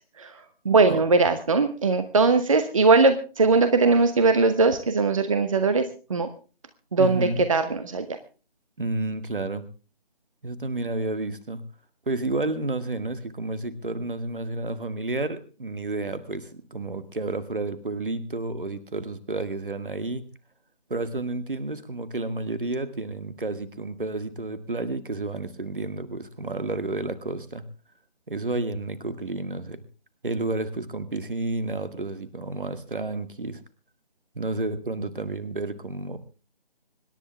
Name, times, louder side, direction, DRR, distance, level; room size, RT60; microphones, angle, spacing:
voice 1, 0.6-6.3 6.9-8.2, right 3 dB, 35° right, 10 dB, 1.1 m, -20 dB
voice 2, 7.0-7.4 8.8-9.7 10.4-11.6 12.1-20.2 20.9-27.6 28.3-29.8 30.2-33.6 34.4-36.2, right 2 dB, 60° right, 11 dB, 2.1 m, -31 dB
25.5 x 11.0 x 3.4 m, 0.36 s
figure-of-eight pair, 155°, 29 cm